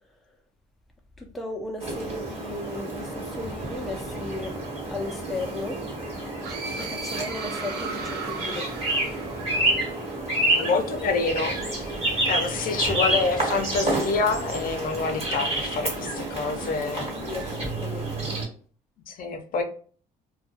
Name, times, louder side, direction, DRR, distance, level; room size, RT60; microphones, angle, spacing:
voice 1, 1.2-4.6 4.9-5.8 6.8-8.7 17.3-18.4, left 2 dB, ahead, 0.4 m, -35 dB
sound 1, 1.8-18.4, right 1 dB, 35° right, 1.2 m, -29 dB
sound 2, 6.4-10.1, right 4 dB, 70° right, 0.6 m, -37 dB
voice 2, 10.5-11.6 12.3-17.1 19.1-19.6, left 4 dB, 55° left, 0.5 m, -27 dB
2.3 x 2.2 x 2.7 m
cardioid pair, 110°, 17 cm